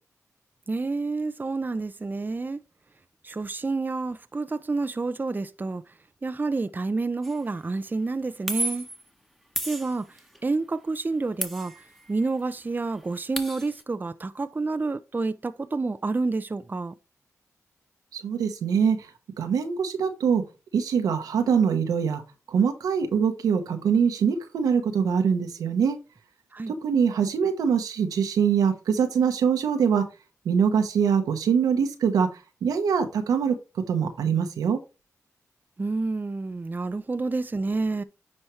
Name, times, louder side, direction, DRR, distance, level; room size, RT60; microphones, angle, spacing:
voice 1, 0.7-2.6 3.2-5.8 6.2-8.9 9.6-10.1 10.4-11.7 12.1-16.9 26.5-26.7 35.8-38.0, right 3 dB, 30° right, 0.6 m, -29 dB
sound 1, 7.2-7.5 8.5-9.0 9.6-10.4 11.4-12.3 12.6-12.7 12.9-13.8, equal, 5° left, 1.4 m, -33 dB
voice 2, 18.2-19.0 19.4-20.4 20.7-22.2 22.5-26.0 26.7-30.0 30.4-32.3 32.6-33.5 33.9-34.8, right 7 dB, 90° right, 1.2 m, -23 dB
9.7 x 4.4 x 3.2 m
cardioid pair, 50°, 6 cm